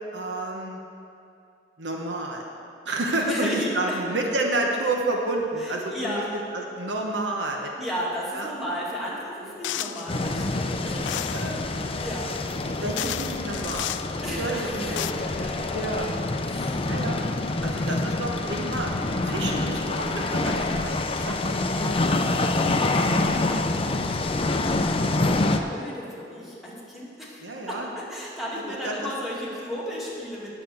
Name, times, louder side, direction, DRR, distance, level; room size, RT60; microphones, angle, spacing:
voice 1, 0.1-0.8 1.8-2.5 2.8-6.2 6.5-7.7 8.3-8.5 9.8-10.0 11.3-11.8 12.8-14.0 14.4-15.1 15.7-16.1 16.8-17.2 17.6-18.9 19.2-21.6 25.3-25.5 27.4-27.9 28.7-29.1, right 2 dB, 70° right, 1 dB, 1.1 m, -30 dB
voice 2, 3.2-4.0 5.6-6.2 7.8-11.1 11.6-12.4 14.2-16.0 16.5-16.9 21.7-23.4 23.7-24.8 25.2-30.6, equal, ahead, -6 dB, 2.3 m, -35 dB
sound 1, 9.6-10.1 11.1-11.5 12.5-12.6 13.0-14.1 14.7-15.1, left 12 dB, 85° left, 0.3 m, -32 dB
sound 2, 10.1-25.6, left 2 dB, 30° left, 0.6 m, -26 dB
9.2 x 6.7 x 7.8 m, 2.6 s
head